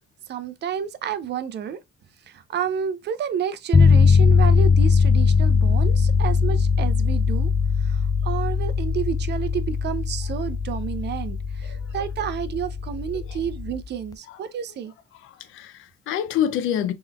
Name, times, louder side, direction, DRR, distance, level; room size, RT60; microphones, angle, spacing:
voice 1, 0.3-1.8 2.3-7.5 7.8-14.9, right 8 dB, 60° right, 0.5 m, -30 dB
sound 1, 3.7-13.9, left 5 dB, 20° left, 0.3 m, -20 dB
voice 2, 15.2-16.9, left 10 dB, 85° left, 0.5 m, -27 dB
3.7 x 3.0 x 2.2 m
cardioid pair, 90°, 20 cm